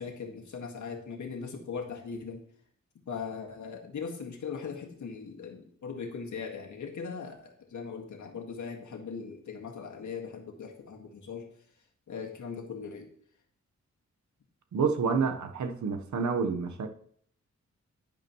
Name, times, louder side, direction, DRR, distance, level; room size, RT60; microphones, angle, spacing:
voice 1, 0.0-2.4 3.1-11.5 12.1-13.1, left 5 dB, 80° left, 1.8 m, -39 dB
voice 2, 14.7-16.9, right 5 dB, 75° right, 1.0 m, -28 dB
10.5 x 10.5 x 3.0 m
wide cardioid pair, 155°, 29 cm